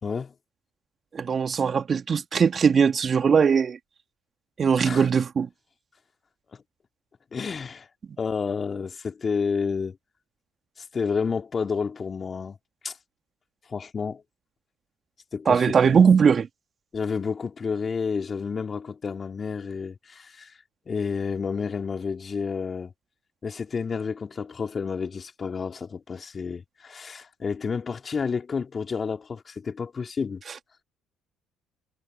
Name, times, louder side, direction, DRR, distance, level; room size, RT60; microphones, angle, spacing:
voice 1, 0.0-0.3 4.8-5.1 7.3-7.9 8.2-10.0 10.8-12.6 12.8-13.0 13.7-14.2 15.3-16.0 16.9-20.6 20.9-22.9 23.4-30.4, left 5 dB, 40° left, 3.1 m, -30 dB
voice 2, 1.1-3.8 4.6-5.5 15.5-16.5, right 6 dB, 40° right, 2.2 m, -20 dB
hypercardioid pair, 65°, 0 cm